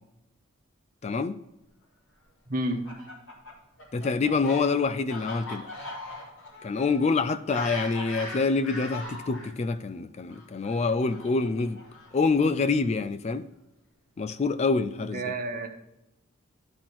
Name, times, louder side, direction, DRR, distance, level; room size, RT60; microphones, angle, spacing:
voice 1, 1.0-1.4 3.9-5.7 6.6-11.8 12.1-13.5 14.2-15.3, left 4 dB, 30° left, 0.3 m, -26 dB
voice 2, 2.5-2.8 15.0-15.7, right 1 dB, 40° right, 1.3 m, -30 dB
Fowl, 2.6-9.5 10.3-12.3, left 2 dB, 70° left, 3.3 m, -40 dB
12.0 x 4.3 x 6.0 m
head